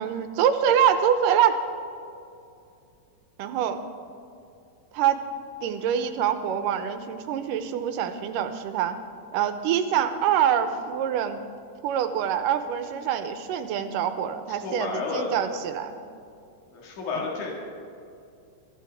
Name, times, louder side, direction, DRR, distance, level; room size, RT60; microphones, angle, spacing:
voice 1, 0.0-1.6 3.4-3.8 4.9-5.2 5.6-9.0 9.3-11.4 11.8-16.0 17.2-17.3, right 9 dB, 85° right, 9 dB, 2.4 m, -25 dB
voice 2, 14.5-15.4 16.7-17.5, left 4 dB, 65° left, -2 dB, 3.5 m, -31 dB
22.5 x 14.0 x 3.6 m, 2.5 s
omnidirectional pair, 3.8 m